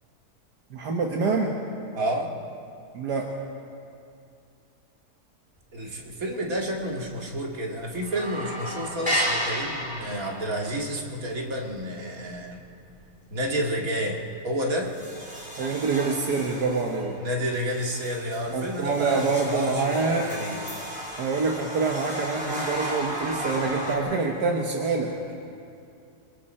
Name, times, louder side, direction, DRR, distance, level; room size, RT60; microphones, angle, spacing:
voice 1, 0.7-1.5 2.9-3.3 15.6-17.2 18.5-20.3 21.2-25.2, right 4 dB, 75° right, 1 dB, 1.9 m, -26 dB
voice 2, 1.9-2.3 5.7-12.6 13.3-14.9 17.2-20.6, equal, 55° right, 0 dB, 2.6 m, -30 dB
sound 1, 5.8-6.3 6.5-6.6 7.0-7.6 7.8-13.1 13.5-13.8 14.3-14.4 14.8-24.0, equal, 5° right, 4.0 m, -34 dB
26.5 x 24.0 x 4.4 m, 2.5 s
omnidirectional pair, 1.8 m